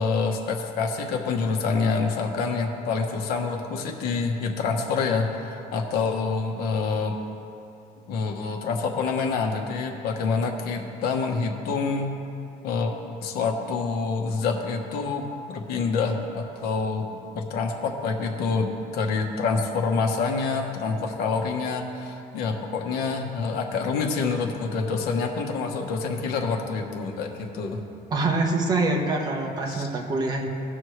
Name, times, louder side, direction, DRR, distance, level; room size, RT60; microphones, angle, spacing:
voice 1, 0.0-7.1 8.1-12.1 12.6-12.9 13.2-15.3 15.5-27.8 29.7-29.9, left 4 dB, 70° left, 3 dB, 1.1 m, -27 dB
voice 2, 28.1-30.5, right 2 dB, 25° right, 0 dB, 1.0 m, -25 dB
17.5 x 6.3 x 3.2 m, 2.7 s
cardioid pair, 180°, 17 cm